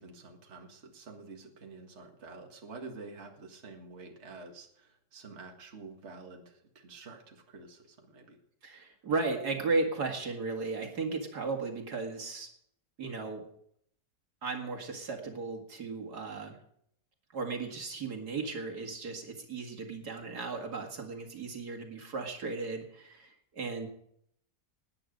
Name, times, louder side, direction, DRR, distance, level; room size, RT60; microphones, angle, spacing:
voice 1, 0.0-8.4, right 3 dB, 45° right, 2 dB, 2.0 m, -48 dB
voice 2, 8.6-12.5 13.0-13.4 14.4-16.6 17.3-23.9, right 3 dB, 70° right, 3 dB, 2.6 m, -35 dB
18.5 x 9.8 x 5.2 m, 0.70 s
omnidirectional pair, 1.8 m